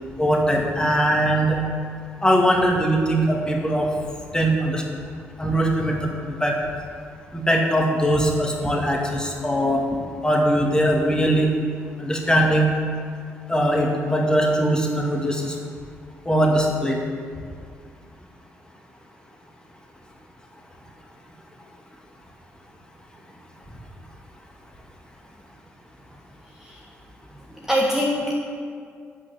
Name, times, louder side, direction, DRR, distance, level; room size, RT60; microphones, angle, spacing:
voice 1, 0.2-1.6 2.2-3.9 4.3-4.8 5.4-6.6 7.3-9.8 10.2-11.5 12.0-12.7 13.5-15.6 16.3-17.0, right 1 dB, 10° left, 0 dB, 2.3 m, -21 dB
voice 2, 27.5-28.4, equal, 5° right, -3 dB, 1.7 m, -23 dB
8.7 x 8.2 x 8.0 m, 2.2 s
figure-of-eight pair, 40°, 7 cm